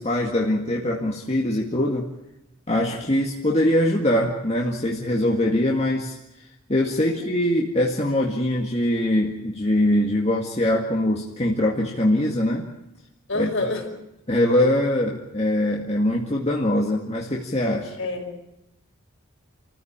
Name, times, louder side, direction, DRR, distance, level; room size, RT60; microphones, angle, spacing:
voice 1, 0.0-2.1 2.7-12.7 13.3-13.5 14.3-18.0, left 1 dB, 30° left, -1 dB, 2.0 m, -22 dB
voice 2, 13.3-13.9 18.0-18.5, left 2 dB, 60° left, 3 dB, 5.2 m, -28 dB
28.5 x 15.0 x 8.8 m, 0.88 s
head